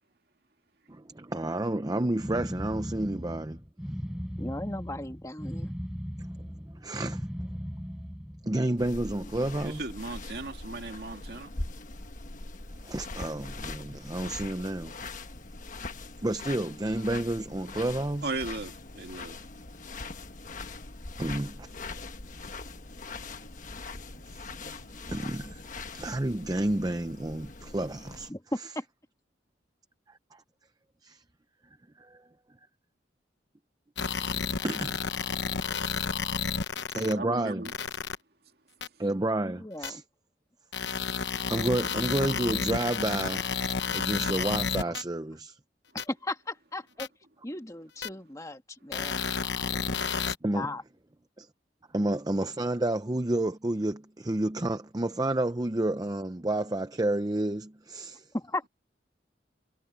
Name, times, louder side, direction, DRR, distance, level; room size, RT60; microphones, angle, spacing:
voice 1, 0.9-3.6 6.8-7.2 8.5-9.9 12.8-14.9 16.2-18.3 21.2-21.7 24.7-25.6 25.9-28.3 30.3-30.4 31.0-31.2 32.0-32.2 34.6-35.1 35.3-35.4 35.9-36.0 36.9-37.7 39.0-40.0 41.5-43.5 43.9-45.6 50.4-50.7 51.4-51.5 51.9-58.3, right 1 dB, 20° right, 0.6 m, -30 dB
sound 1, 2.2-8.5, equal, 5° right, 4.9 m, -37 dB
voice 2, 4.4-5.7 28.3-28.8 39.6-40.0 46.0-47.1 47.4-49.2 50.5-50.8 58.3-58.7, left 1 dB, 20° left, 1.7 m, -36 dB
sound 2, 8.8-28.3, left 3 dB, 45° left, 1.3 m, -42 dB
voice 3, 9.6-11.5 18.2-19.4 37.1-37.7, right 3 dB, 60° right, 2.3 m, -36 dB
sound 3, 34.0-37.1 37.7-38.2 38.8-38.9 39.8-39.9 40.7-45.0 46.0-46.1 47.0-47.1 48.0-48.1 48.9-50.4, left 5 dB, 75° left, 1.0 m, -31 dB
head